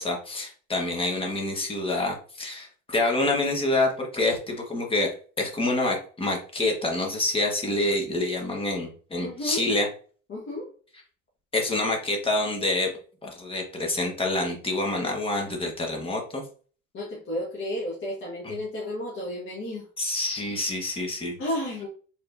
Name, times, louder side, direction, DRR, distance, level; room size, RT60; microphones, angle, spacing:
voice 1, 0.0-5.1 5.4-9.9 11.5-12.9 13.2-16.4 18.4-18.6 20.0-21.4, left 2 dB, 15° left, 1 dB, 1.2 m, -27 dB
voice 2, 9.2-9.6 10.3-10.7 16.9-19.8 21.4-21.9, left 1 dB, 35° left, -4 dB, 1.5 m, -32 dB
4.8 x 3.6 x 2.6 m, 0.41 s
cardioid pair, 130°, 34 cm